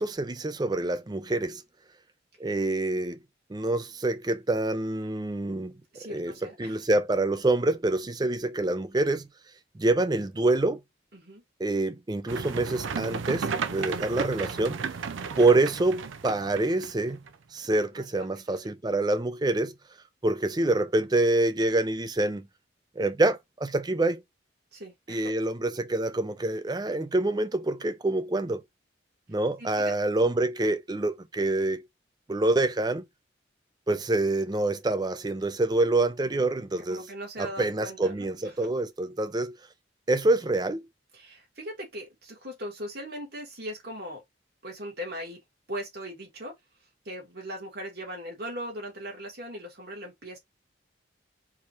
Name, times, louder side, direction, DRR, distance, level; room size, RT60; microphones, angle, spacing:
voice 1, 0.0-1.6 2.4-3.2 3.5-5.7 6.1-6.3 6.6-9.3 9.7-10.8 11.6-14.8 15.4-17.2 17.5-19.7 20.2-22.5 23.0-24.2 25.1-28.6 29.3-31.8 32.3-33.0 33.9-37.1 37.4-39.6 40.1-40.9, right 2 dB, 20° right, 0.4 m, -26 dB
voice 2, 5.9-6.8 11.1-11.4 17.8-18.3 24.7-25.3 29.6-29.9 36.9-38.7 41.1-44.2 44.6-45.4 45.7-46.5 47.0-50.4, equal, 55° right, 2.4 m, -39 dB
sound 1, 12.3-17.3, right 5 dB, 85° right, 0.5 m, -34 dB
4.8 x 2.8 x 3.0 m
head